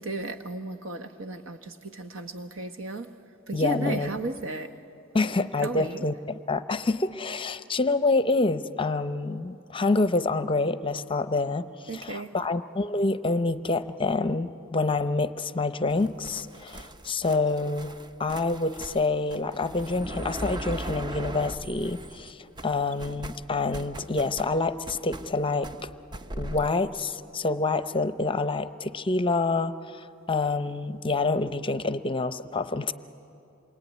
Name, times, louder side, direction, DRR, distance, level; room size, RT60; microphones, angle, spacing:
voice 1, 0.0-3.1 3.5-4.7 5.1-6.1 11.9-12.4, right 2 dB, 70° right, 7 dB, 1.4 m, -34 dB
voice 2, 3.5-4.1 5.1-11.7 11.9-17.9 18.2-25.9 26.3-32.9, left 3 dB, 25° left, 12 dB, 0.7 m, -27 dB
sound 1, 15.9-22.3 22.6-26.7, right 1 dB, 20° right, 0.6 m, -39 dB
27.5 x 23.0 x 9.4 m, 2.8 s
head